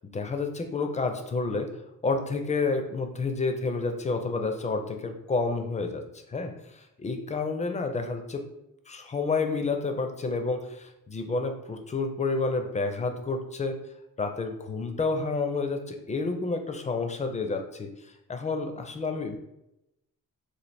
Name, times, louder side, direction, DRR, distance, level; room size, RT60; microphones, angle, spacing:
voice 1, 0.1-1.7 2.0-8.5 8.9-13.8 14.2-17.9 18.3-19.4, left 3 dB, 20° left, 6 dB, 0.4 m, -30 dB
3.2 x 2.4 x 4.2 m, 0.86 s
cardioid pair, 115°, 33 cm